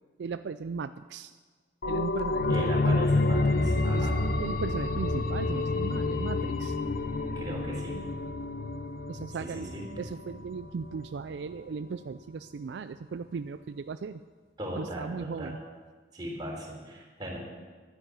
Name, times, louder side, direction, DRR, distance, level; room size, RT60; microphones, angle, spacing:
voice 1, 0.2-1.3 1.9-2.6 2.9-3.0 3.9-4.1 4.4-6.8 9.1-14.2 14.8-15.6, right 5 dB, 70° right, 11 dB, 0.4 m, -37 dB
sound 1, 1.8-11.2 11.5-11.6, left 2 dB, 55° left, 0.7 m, -29 dB
voice 2, 2.5-4.2 7.1-8.0 9.4-9.9 14.6-15.6 16.1-17.4, right 1 dB, 25° right, -3 dB, 3.8 m, -38 dB
12.0 x 10.0 x 8.3 m, 1.5 s
head